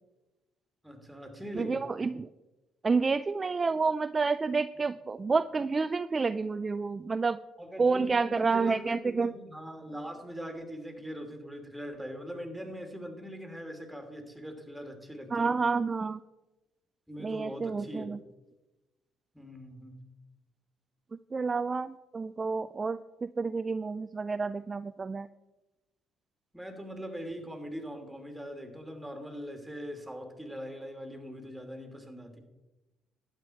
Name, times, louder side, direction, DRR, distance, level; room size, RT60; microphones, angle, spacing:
voice 1, 0.8-1.9 7.6-15.6 17.1-18.1 19.3-20.0 26.5-32.4, equal, 5° right, 4 dB, 2.8 m, -41 dB
voice 2, 1.5-2.3 2.8-7.4 7.8-9.3 15.3-16.2 17.2-18.2 21.3-23.0 23.4-25.3, right 4 dB, 35° right, 12 dB, 0.4 m, -29 dB
11.5 x 8.9 x 4.6 m, 1.1 s
hypercardioid pair, 55°, 0 cm